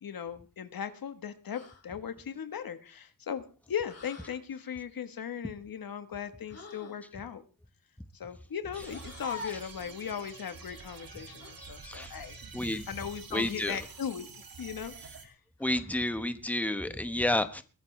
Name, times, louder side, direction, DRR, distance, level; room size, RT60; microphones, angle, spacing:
voice 1, 0.0-3.4 3.7-7.4 8.1-12.4 12.9-14.3 14.6-14.9 15.2-15.3, left 8 dB, 80° left, 1.3 m, -38 dB
sound 1, 1.5-1.9 3.8-4.4 6.5-7.0 8.8-9.8 11.4-11.6 13.7-14.2 15.6-16.1, left 4 dB, 45° left, 2.9 m, -45 dB
sound 2, 8.7-15.3, right 5 dB, 75° right, 2.6 m, -48 dB
voice 2, 11.6-12.1 12.5-12.9 13.3-13.8 15.6-17.6, left 1 dB, 5° left, 1.2 m, -31 dB
22.0 x 13.0 x 3.3 m
wide cardioid pair, 95°, 34 cm